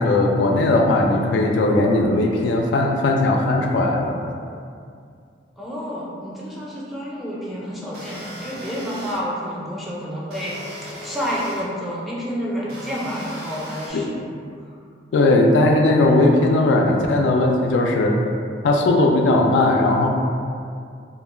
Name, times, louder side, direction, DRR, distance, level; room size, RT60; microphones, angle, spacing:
voice 1, 0.0-4.2 15.1-18.2 18.6-20.1, left 2 dB, 85° left, 1 dB, 0.3 m, -18 dB
voice 2, 5.6-10.6 11.0-14.3, equal, ahead, -7 dB, 0.4 m, -29 dB
sound 1, 7.9-9.2 10.3-11.6 12.7-13.9, equal, 60° right, 0.5 m, -37 dB
2.2 x 2.1 x 3.2 m, 2.3 s
head